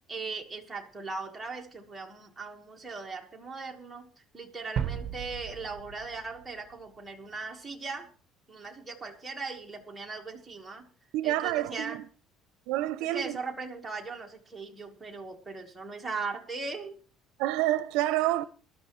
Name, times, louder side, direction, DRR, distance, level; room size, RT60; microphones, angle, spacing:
voice 1, 0.1-8.1 8.5-10.9 11.2-12.1 13.0-17.0, right 4 dB, 10° right, 1.5 m, -39 dB
sound 1, 4.8-7.2, right 8 dB, 35° right, 0.9 m, -36 dB
voice 2, 11.1-12.0 12.7-13.4 17.4-18.4, right 15 dB, 85° right, 0.5 m, -28 dB
19.0 x 12.5 x 3.1 m
cardioid pair, 170°, 0 cm